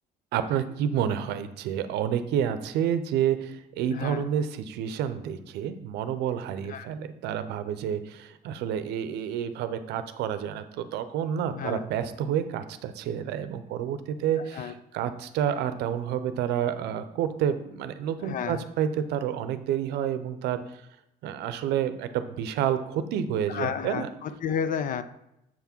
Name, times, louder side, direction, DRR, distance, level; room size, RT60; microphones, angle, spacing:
voice 1, 0.3-20.8 21.2-24.1, right 9 dB, 85° right, 0.6 m, -29 dB
voice 2, 3.9-4.3 6.7-6.9 11.5-11.8 14.4-14.7 18.2-18.6 23.5-25.0, left 7 dB, 50° left, 0.5 m, -32 dB
7.5 x 3.6 x 5.9 m
cardioid pair, 110°, 17 cm